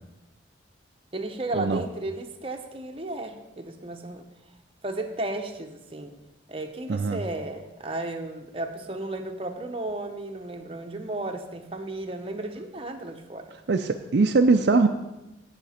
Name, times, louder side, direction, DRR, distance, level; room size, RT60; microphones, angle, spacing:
voice 1, 1.1-4.2 4.8-6.2 6.5-13.6, right 2 dB, 30° right, 4 dB, 0.9 m, -34 dB
voice 2, 6.9-7.2 13.7-14.9, right 3 dB, 55° right, 6 dB, 0.4 m, -21 dB
16.5 x 5.9 x 4.3 m, 1.0 s
head